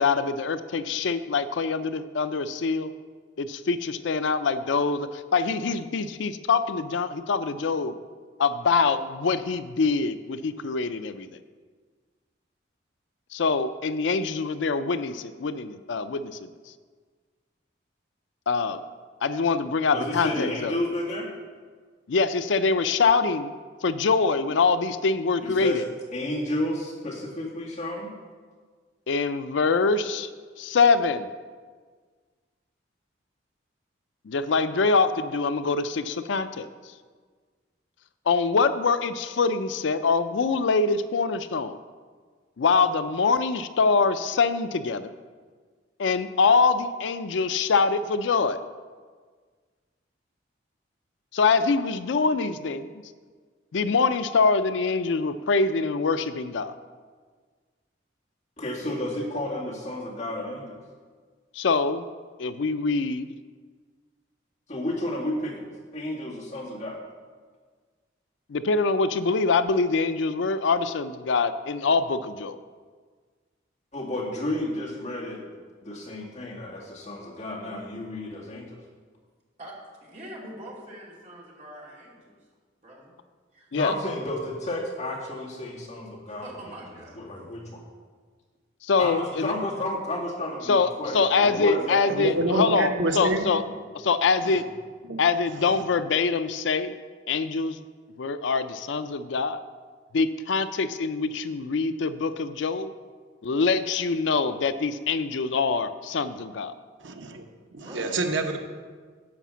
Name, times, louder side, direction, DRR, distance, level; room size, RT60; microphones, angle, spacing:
voice 1, 0.0-2.9 3.4-7.9 8.4-11.3 13.3-16.4 18.5-18.8 19.2-20.7 22.1-23.5 23.8-25.9 29.1-30.3 30.7-31.2 34.3-36.7 38.3-41.8 42.6-45.1 46.0-48.6 51.3-52.9 53.7-56.7 61.6-62.1 62.4-63.3 68.5-72.6 83.7-83.9 88.8-89.5 90.7-93.6 93.9-94.6 95.2-96.9 97.3-97.8 98.2-99.6 100.1-102.9 103.4-106.7, left 4 dB, 75° left, 12 dB, 0.4 m, -24 dB
voice 2, 19.9-21.3 25.4-25.8 26.1-28.1 58.6-60.8 64.7-65.7 65.9-67.0 73.9-75.4 75.8-78.8 83.7-86.6 87.2-87.8 89.0-92.5, left 1 dB, 40° left, -5 dB, 2.2 m, -32 dB
voice 3, 79.6-82.4 82.8-83.2 83.5-83.7 86.3-87.5 107.8-108.1, right 1 dB, 35° right, -4 dB, 2.5 m, -44 dB
voice 4, 92.1-93.5 94.4-94.6 95.0-95.2 95.5-95.7 107.0-107.4 107.7-108.6, right 2 dB, 80° right, 4 dB, 1.0 m, -27 dB
11.0 x 5.0 x 7.2 m, 1.6 s
head